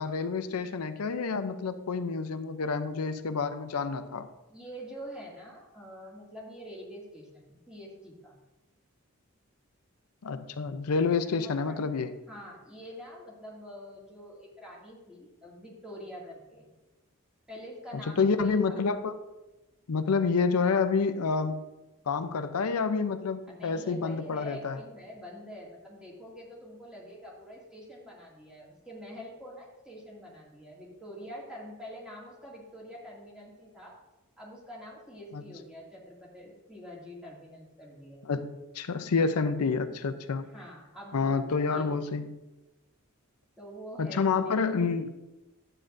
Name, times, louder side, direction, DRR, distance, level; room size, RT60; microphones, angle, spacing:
voice 1, 0.0-4.3 10.2-12.1 18.2-19.2 19.9-21.6 22.1-24.8 35.3-35.4 38.2-40.5 41.1-42.3 44.0-45.1, left 4 dB, 90° left, 10 dB, 0.5 m, -28 dB
voice 2, 4.5-8.4 11.4-11.9 12.3-16.7 17.5-18.8 23.5-33.9 34.4-38.3 40.5-41.4 41.7-41.9 43.6-45.1, equal, 5° right, -5 dB, 2.2 m, -46 dB
11.0 x 8.7 x 2.6 m, 1.0 s
head